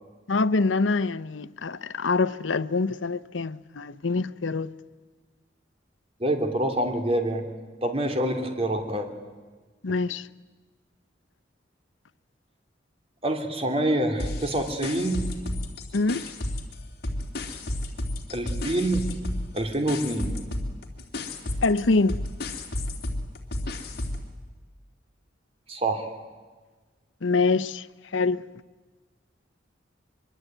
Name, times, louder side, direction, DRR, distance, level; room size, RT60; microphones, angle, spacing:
voice 1, 0.3-4.7 9.8-10.3 15.9-16.2 21.6-22.2 27.2-27.9 28.1-28.4, left 3 dB, 90° left, 0.8 m, -25 dB
voice 2, 6.2-7.4 7.8-9.1 13.2-15.2 18.3-19.0 19.5-20.3 25.7-26.1, right 1 dB, 30° right, 3.1 m, -26 dB
sound 1, 14.2-16.8 17.0-24.3, left 1 dB, 55° left, 3.2 m, -32 dB
24.0 x 24.0 x 9.3 m
head